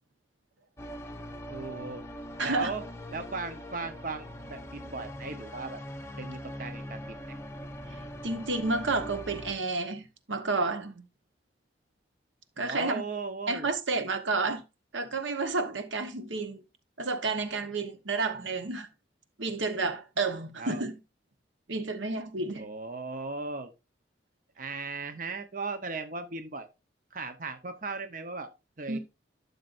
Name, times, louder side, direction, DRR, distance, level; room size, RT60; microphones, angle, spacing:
sound 1, 0.8-9.5, equal, 15° left, 0.8 m, -42 dB
voice 1, 1.5-2.0 2.4-2.8 3.1-5.8 6.2-7.2 12.6-13.7 20.6-20.8 22.6-23.7 24.6-26.7 27.1-28.5 28.8-29.0, right 3 dB, 45° right, 0.9 m, -37 dB
voice 2, 2.4-2.7 7.9-11.0 12.6-13.0 13.5-14.6 14.9-16.6 17.0-18.9 19.4-21.0 21.7-22.6 28.9-29.0, right 3 dB, 85° right, 1.2 m, -31 dB
12.0 x 6.7 x 2.6 m
head